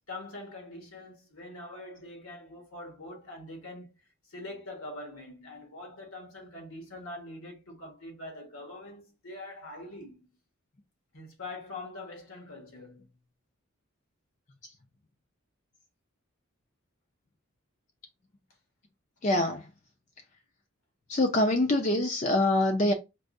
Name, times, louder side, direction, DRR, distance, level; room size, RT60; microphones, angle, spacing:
voice 1, 0.1-3.9 4.3-10.3 11.1-13.1, left 2 dB, 75° left, 1.1 m, -43 dB
voice 2, 19.2-19.7 21.1-22.9, left 1 dB, 35° left, 0.4 m, -24 dB
4.5 x 2.1 x 2.6 m
head